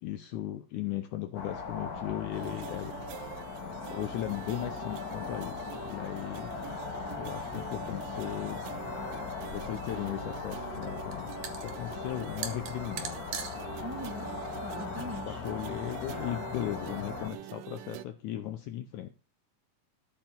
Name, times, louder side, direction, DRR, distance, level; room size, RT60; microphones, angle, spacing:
voice 1, 0.0-3.0 3.9-6.5 7.2-8.6 9.4-13.2 14.9-19.1, left 12 dB, 75° left, 8 dB, 1.9 m, -37 dB
sound 1, 1.3-17.3, left 5 dB, 55° left, 1.0 m, -39 dB
sound 2, 2.3-18.1, right 13 dB, 80° right, 2.4 m, -45 dB
sound 3, 9.5-15.6, right 7 dB, 65° right, 2.6 m, -44 dB
voice 2, 13.8-14.3 14.6-15.4, equal, 5° right, 1 dB, 2.0 m, -41 dB
13.5 x 5.4 x 7.1 m, 0.35 s
omnidirectional pair, 4.1 m